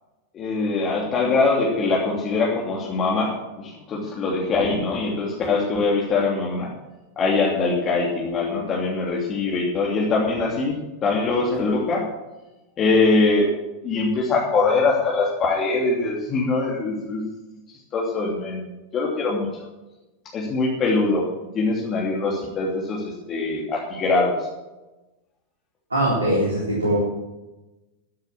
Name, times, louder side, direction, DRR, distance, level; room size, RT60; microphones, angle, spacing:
voice 1, 0.3-6.7 7.2-12.1 12.8-13.6 13.8-17.2 17.9-18.6 18.9-19.5 20.3-21.2 21.5-24.4, left 3 dB, 30° left, -3 dB, 2.9 m, -22 dB
voice 2, 25.9-27.0, right 1 dB, 85° right, -5 dB, 3.9 m, -21 dB
13.0 x 8.8 x 7.3 m, 1.1 s
figure-of-eight pair, 90°, 0 cm